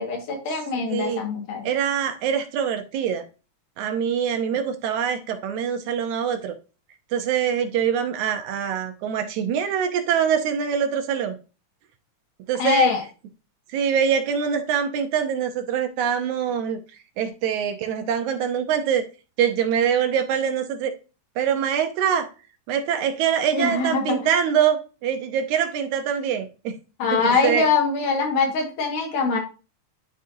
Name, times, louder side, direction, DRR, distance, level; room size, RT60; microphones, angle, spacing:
voice 1, 0.0-1.7 12.6-13.0 23.5-24.1 27.0-29.4, left 4 dB, 85° left, 3.4 m, -23 dB
voice 2, 0.9-1.3 1.6-3.2 3.8-6.5 7.1-11.4 12.5-12.9 13.7-16.8 17.2-19.0 19.4-20.9 21.4-22.3 22.7-26.8 27.1-27.7, right 8 dB, 75° right, 2.1 m, -24 dB
11.0 x 4.0 x 2.7 m
omnidirectional pair, 3.6 m